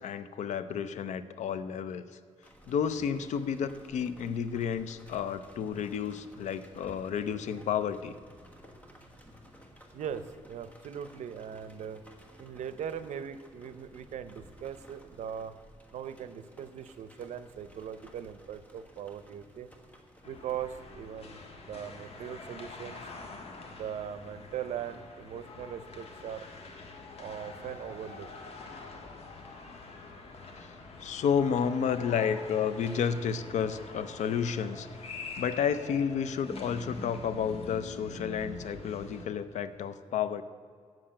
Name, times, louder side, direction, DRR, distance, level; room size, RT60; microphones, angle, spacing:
voice 1, 0.0-2.0 2.7-8.1 30.6-30.7 31.0-34.9 35.4-40.4, left 7 dB, 90° left, 13 dB, 0.5 m, -31 dB
sound 1, 2.4-20.7, equal, 15° left, 1.3 m, -56 dB
voice 2, 9.9-12.0 12.4-15.5 15.9-19.7 20.3-23.0 23.7-26.5 27.2-28.3, right 8 dB, 85° right, 12 dB, 0.6 m, -40 dB
sound 2, 20.2-39.3, left 3 dB, 60° left, 1.5 m, -45 dB
7.7 x 7.6 x 8.6 m, 2.2 s
wide cardioid pair, 120°, 12 cm